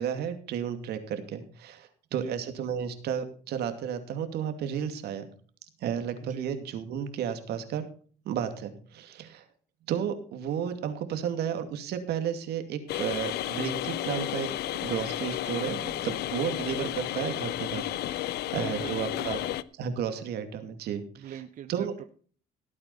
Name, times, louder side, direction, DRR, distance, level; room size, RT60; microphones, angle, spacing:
voice 1, 0.0-5.2 5.8-7.8 8.2-9.4 9.9-19.4 19.7-21.4 21.7-21.9, right 8 dB, 75° right, 8 dB, 2.5 m, -33 dB
sound 1, 12.9-19.6, left 14 dB, 70° left, 0.7 m, -32 dB
voice 2, 18.5-19.6 21.2-22.0, right 10 dB, 50° right, 10 dB, 1.0 m, -43 dB
17.0 x 8.9 x 4.2 m, 0.44 s
cardioid pair, 110°, 17 cm